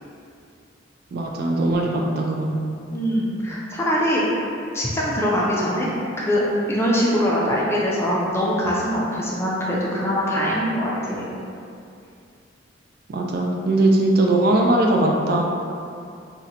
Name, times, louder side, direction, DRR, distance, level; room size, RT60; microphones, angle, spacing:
voice 1, 1.1-2.6 13.1-15.4, right 2 dB, 50° right, 0 dB, 0.3 m, -20 dB
voice 2, 2.9-4.4 4.7-5.9 6.2-6.4 6.7-11.3, equal, 15° left, -6 dB, 0.4 m, -22 dB
3.7 x 2.1 x 2.7 m, 2.5 s
head